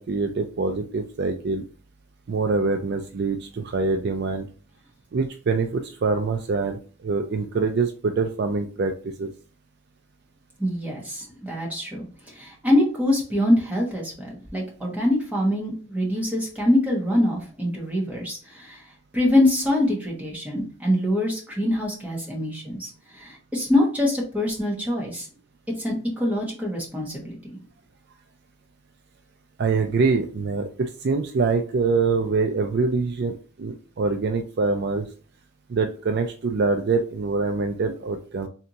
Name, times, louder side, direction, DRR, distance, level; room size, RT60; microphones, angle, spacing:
voice 1, 0.0-1.6 2.3-4.5 5.1-9.3 29.6-35.1 35.7-38.5, right 4 dB, 50° right, 6 dB, 0.4 m, -25 dB
voice 2, 10.6-18.8 19.1-25.3 25.8-27.3, left 1 dB, 5° right, -3 dB, 1.1 m, -24 dB
3.4 x 2.9 x 3.9 m, 0.40 s
head